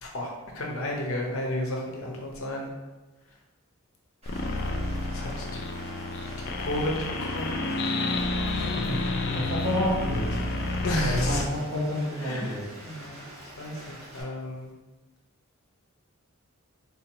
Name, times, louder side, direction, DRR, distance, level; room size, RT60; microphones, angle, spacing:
voice 1, 0.0-2.7 5.1-5.5 6.6-7.6 10.8-11.4 12.2-12.6 12.8-13.2 13.6-14.7, left 1 dB, 70° left, -1 dB, 0.8 m, -32 dB
Rain, 4.2-14.2, right 1 dB, 30° right, 1.1 m, -46 dB
sound 1, 4.3-11.5, left 2 dB, 50° left, 0.3 m, -30 dB
voice 2, 8.5-10.4 11.0-12.6, equal, 50° right, -5 dB, 1.1 m, -30 dB
3.7 x 2.8 x 2.9 m, 1.1 s
head